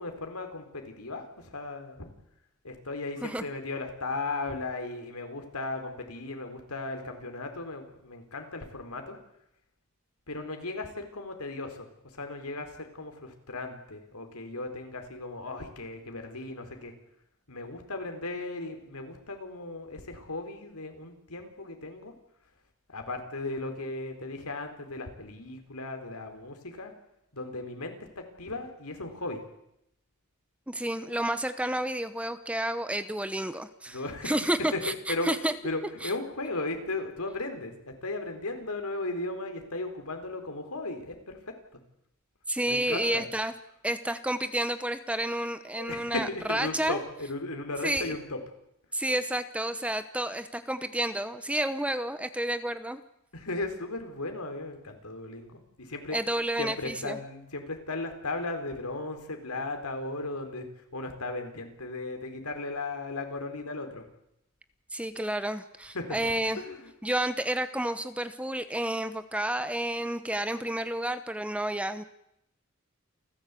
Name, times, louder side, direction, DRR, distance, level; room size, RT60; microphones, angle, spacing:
voice 1, 0.0-2.1 2.6-9.2 10.3-11.9 12.1-16.9 17.5-22.1 22.9-26.9 27.3-29.4 33.9-41.8 42.7-43.3 45.8-48.4 53.3-56.2 56.6-60.7 60.9-64.1 65.9-66.3 66.6-66.9, left 2 dB, 85° left, 5 dB, 4.3 m, -36 dB
voice 2, 30.7-34.0 34.2-35.5 36.0-36.1 42.5-43.5 43.8-47.0 47.8-48.1 48.9-53.0 56.1-57.2 64.9-66.6 67.0-72.0, right 1 dB, 5° right, 11 dB, 0.9 m, -30 dB
29.0 x 15.0 x 8.5 m, 0.82 s
head